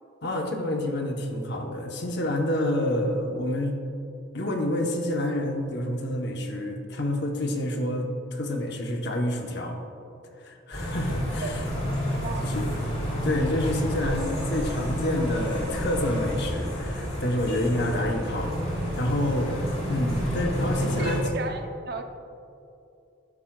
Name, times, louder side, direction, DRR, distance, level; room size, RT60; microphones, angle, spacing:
voice 1, 0.2-3.8 4.3-9.8 10.4-11.6 12.4-12.7 13.2-18.5 19.0-19.5 19.9-21.2, left 1 dB, 55° left, 3 dB, 0.9 m, -28 dB
sound 1, 10.7-21.2, equal, 30° left, 2.2 m, -29 dB
voice 2, 20.8-22.0, right 3 dB, 50° right, 6 dB, 0.6 m, -35 dB
11.0 x 9.7 x 2.3 m, 2.7 s
head